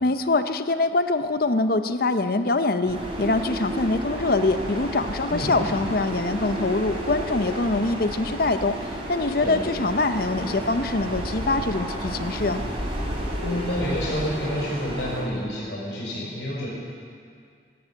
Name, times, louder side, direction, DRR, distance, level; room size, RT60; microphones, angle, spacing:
voice 1, 0.0-12.6, left 3 dB, 55° left, 10 dB, 0.7 m, -24 dB
sound 1, 2.8-15.2, equal, 35° right, 3.4 m, -31 dB
voice 2, 13.4-16.7, equal, 80° left, -5 dB, 5.4 m, -29 dB
13.5 x 12.0 x 8.5 m, 2.2 s
head